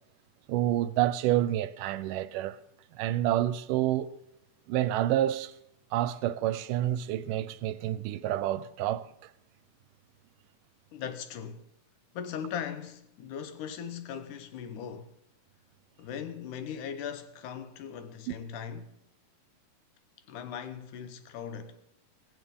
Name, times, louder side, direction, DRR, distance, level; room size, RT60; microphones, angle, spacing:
voice 1, 0.5-2.6 3.0-4.2 4.7-5.5 5.9-9.1 18.3-18.4, right 13 dB, 80° right, 2.1 m, -28 dB
voice 2, 10.9-11.6 12.1-15.1 16.0-18.9 20.3-21.8, left 8 dB, 75° left, 2.4 m, -39 dB
15.5 x 15.0 x 3.7 m
omnidirectional pair, 3.8 m